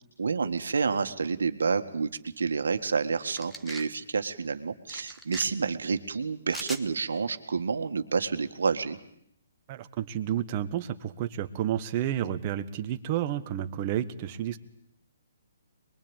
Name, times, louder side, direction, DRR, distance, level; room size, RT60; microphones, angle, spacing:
voice 1, 0.2-9.0, right 5 dB, 80° right, 9 dB, 1.9 m, -29 dB
sound 1, 3.4-3.9 4.9-5.5 6.5-6.8, right 1 dB, ahead, 1.3 m, -40 dB
voice 2, 9.7-14.6, right 11 dB, 35° right, 9 dB, 1.4 m, -31 dB
23.5 x 22.0 x 9.1 m, 0.71 s
hypercardioid pair, 150°, 0 cm